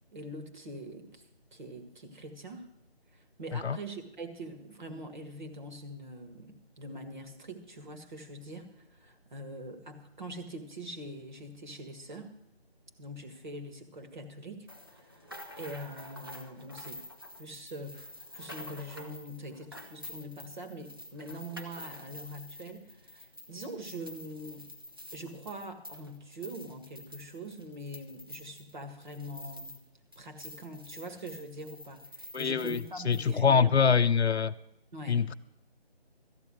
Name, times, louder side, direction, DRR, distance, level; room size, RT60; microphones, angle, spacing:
voice 1, 0.1-1.2 1.5-2.7 3.1-12.3 13.0-15.2 15.6-17.0 17.4-24.7 25.1-29.8 30.1-33.8 34.9-35.3, right 1 dB, 45° right, 1.7 m, -43 dB
sound 1, 14.7-29.9 30.1-33.3, left 1 dB, 20° right, 0.6 m, -48 dB
voice 2, 32.3-32.8 33.1-34.5 35.1-35.3, left 6 dB, 80° left, 0.6 m, -24 dB
13.5 x 8.9 x 6.2 m
figure-of-eight pair, 165°, 32 cm